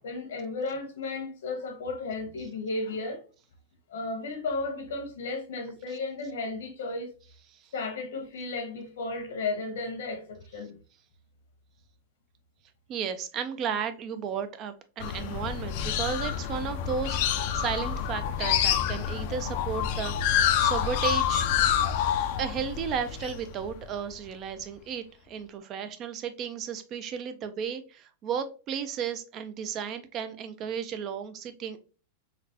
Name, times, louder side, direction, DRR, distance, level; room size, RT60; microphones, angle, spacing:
voice 1, 0.0-3.2 3.9-7.1 7.7-10.8, left 3 dB, 90° left, 1.2 m, -34 dB
voice 2, 12.9-21.5 22.4-31.8, right 7 dB, 30° right, 0.3 m, -34 dB
sound 1, 15.0-24.1, left 9 dB, 50° left, 0.4 m, -28 dB
3.9 x 2.1 x 2.8 m
supercardioid pair, 155°, 0 cm